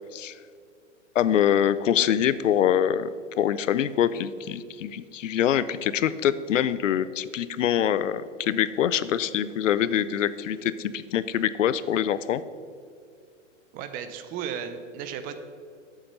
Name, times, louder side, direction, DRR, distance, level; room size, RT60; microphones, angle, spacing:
voice 1, 1.1-3.1 3.4-12.4, left 10 dB, 80° left, 16 dB, 0.6 m, -24 dB
voice 2, 13.7-15.4, right 8 dB, 25° right, 9 dB, 0.5 m, -35 dB
8.4 x 7.4 x 5.3 m, 2.3 s
hypercardioid pair, 130°, 37 cm